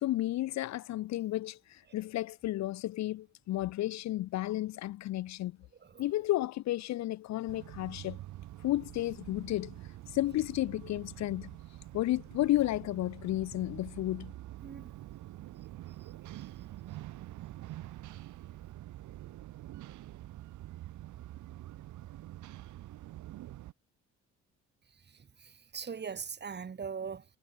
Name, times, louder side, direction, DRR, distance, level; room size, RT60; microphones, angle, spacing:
voice 1, 0.0-5.6 6.0-8.2 8.6-9.8 10.1-11.5 11.9-14.3, left 15 dB, 65° left, 0.5 m, -32 dB
sound 1, 7.5-23.7, right 15 dB, 75° right, 1.0 m, -46 dB
voice 2, 14.6-14.9 16.0-16.5 25.1-27.2, right 6 dB, 35° right, 1.4 m, -41 dB
cardioid pair, 90°, 30 cm